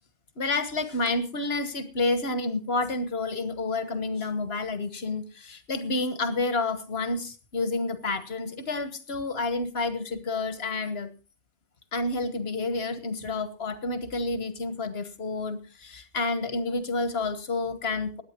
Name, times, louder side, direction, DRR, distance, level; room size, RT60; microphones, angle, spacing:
voice 1, 0.4-11.1 11.9-18.2, left 3 dB, 85° left, 11 dB, 1.7 m, -29 dB
17.5 x 10.5 x 4.5 m, 0.34 s
omnidirectional pair, 1.0 m